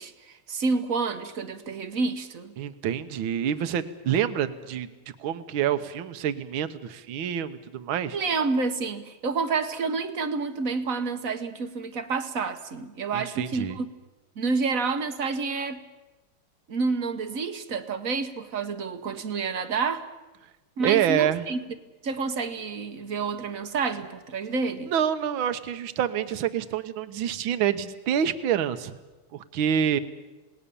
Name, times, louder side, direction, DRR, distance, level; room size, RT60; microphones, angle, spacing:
voice 1, 0.0-2.5 8.1-13.8 14.4-15.8 16.7-20.0 20.8-21.6 22.0-24.9, right 4 dB, 50° right, 9 dB, 1.2 m, -29 dB
voice 2, 2.6-4.9 5.2-8.2 13.1-13.8 20.8-21.5 24.9-28.9 29.3-30.0, right 9 dB, 70° right, 11 dB, 1.8 m, -27 dB
27.5 x 19.5 x 7.0 m, 1.1 s
omnidirectional pair, 2.4 m